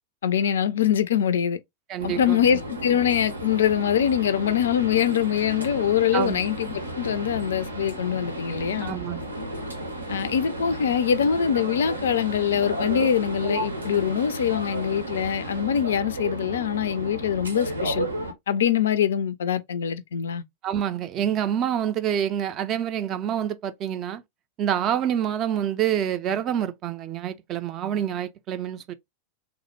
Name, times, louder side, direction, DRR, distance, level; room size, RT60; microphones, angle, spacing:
voice 1, 0.2-1.6 2.0-9.0 10.1-18.1 18.5-20.4, left 9 dB, 65° left, 0.3 m, -24 dB
voice 2, 1.9-2.5 6.1-6.4 8.8-9.2 20.6-24.2 24.6-28.9, right 10 dB, 35° right, 0.4 m, -27 dB
sound 1, 2.0-18.3, right 1 dB, 80° right, 0.7 m, -33 dB
3.3 x 2.0 x 3.1 m
figure-of-eight pair, 90°, 0 cm